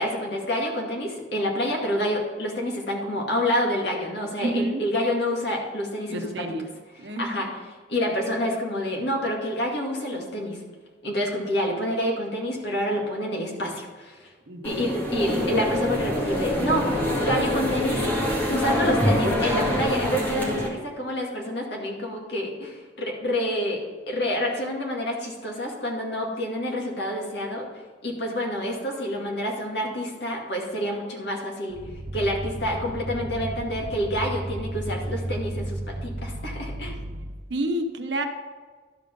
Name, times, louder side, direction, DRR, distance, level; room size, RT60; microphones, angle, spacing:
voice 1, 0.0-6.5 6.9-7.5 7.9-10.6 11.0-14.3 14.6-18.1 18.5-27.7 28.0-31.8 32.1-36.9, equal, 65° left, -1 dB, 2.1 m, -28 dB
voice 2, 4.4-4.8 6.1-6.6 7.0-7.4 14.5-14.8 37.5-38.2, right 1 dB, 75° right, 6 dB, 1.0 m, -29 dB
sound 1, 14.6-20.7, left 1 dB, 10° left, 2.1 m, -25 dB
sound 2, 31.7-37.5, right 1 dB, 35° right, 0.5 m, -33 dB
12.0 x 5.3 x 5.3 m, 1.4 s
head